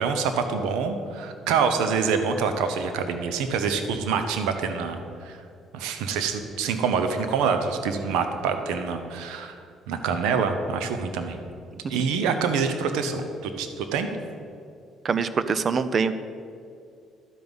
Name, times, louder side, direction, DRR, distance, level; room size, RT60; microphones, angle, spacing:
voice 1, 0.0-5.4 5.7-9.5 9.9-11.4 11.9-14.1, right 5 dB, 90° right, 7 dB, 0.9 m, -26 dB
voice 2, 15.0-16.1, right 5 dB, 45° right, 13 dB, 0.6 m, -24 dB
12.0 x 5.4 x 8.0 m, 2.4 s
cardioid pair, 85°, 0 cm